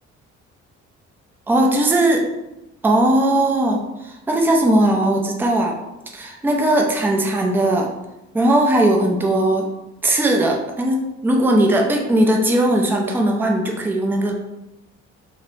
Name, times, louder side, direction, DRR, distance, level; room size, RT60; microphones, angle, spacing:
voice 1, 1.5-2.2 2.8-5.7 6.1-7.9 8.3-9.7 10.0-14.3, right 1 dB, 5° right, 1 dB, 0.4 m, -18 dB
2.5 x 2.1 x 3.0 m, 0.95 s
cardioid pair, 90°, 30 cm